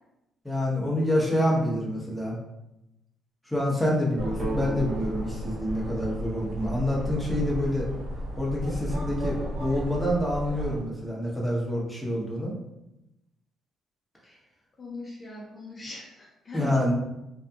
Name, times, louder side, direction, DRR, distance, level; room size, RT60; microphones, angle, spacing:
voice 1, 0.4-2.4 3.4-7.9 8.4-12.6 16.5-16.9, left 1 dB, 5° left, -4 dB, 0.9 m, -27 dB
sound 1, 4.2-10.8, equal, 80° right, 0.6 m, -34 dB
sound 2, 4.4-8.1, right 1 dB, 45° right, 0.8 m, -39 dB
voice 2, 14.8-16.8, left 3 dB, 40° left, -3 dB, 0.6 m, -40 dB
2.7 x 2.3 x 2.3 m, 0.91 s
supercardioid pair, 60°, 0 cm